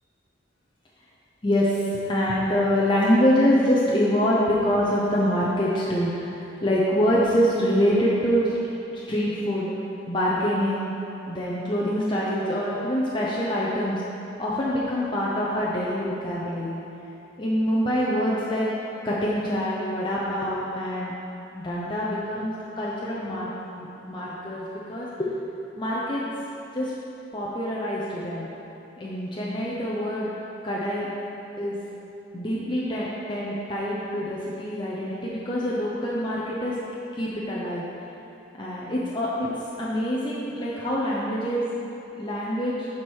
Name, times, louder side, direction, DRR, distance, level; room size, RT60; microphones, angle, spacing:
voice 1, 1.4-8.6 8.9-9.7 10.1-10.9 11.3-14.0 14.4-16.8 17.4-18.7 19.0-21.1 21.5-25.3 25.8-26.2 26.7-26.9 27.3-28.5 29.0-30.3 30.6-31.1 31.6-31.8 32.3-36.8 37.1-37.8 38.5-41.7 42.1-42.9, equal, 25° left, -6 dB, 0.7 m, -25 dB
7.6 x 4.5 x 6.3 m, 2.9 s
head